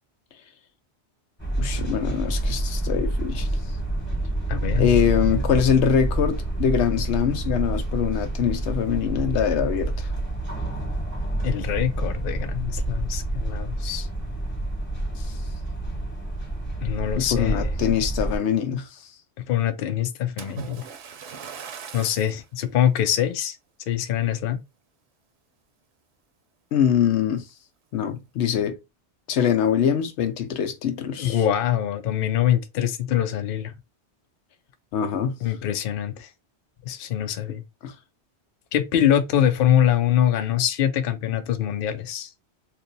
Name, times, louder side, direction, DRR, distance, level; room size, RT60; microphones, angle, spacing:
sound 1, 1.4-18.4, right 2 dB, 10° left, 1.1 m, -28 dB
voice 1, 1.6-3.5 4.8-10.1 15.1-15.2 17.2-19.0 26.7-27.4 27.9-28.8 29.3-31.4 34.9-35.3 37.8-37.9, left 8 dB, 85° left, 0.9 m, -23 dB
voice 2, 4.5-4.9 11.4-14.1 16.8-17.7 19.5-20.8 21.9-23.6 23.9-24.6 31.2-33.7 35.4-36.3 36.8-37.6 38.7-42.3, left 10 dB, 60° left, 0.7 m, -24 dB
Splash splatter, 20.4-22.4 23.1-23.3 23.9-24.0, right 7 dB, 75° right, 0.9 m, -39 dB
2.7 x 2.5 x 3.8 m
omnidirectional pair, 1.1 m